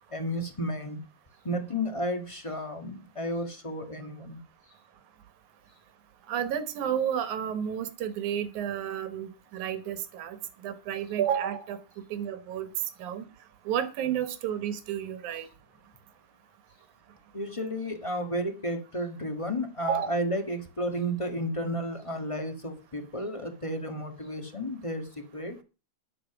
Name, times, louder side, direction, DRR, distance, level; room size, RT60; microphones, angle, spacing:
voice 1, 0.1-1.0 1.4-4.4 17.3-25.6, equal, 20° left, 6 dB, 0.9 m, -32 dB
voice 2, 6.3-10.4 10.6-11.8 12.1-12.7 13.0-13.3 13.7-15.5 19.9-20.1, right 9 dB, 85° right, 11 dB, 2.7 m, -31 dB
11.5 x 7.9 x 6.0 m, 0.31 s
omnidirectional pair, 3.4 m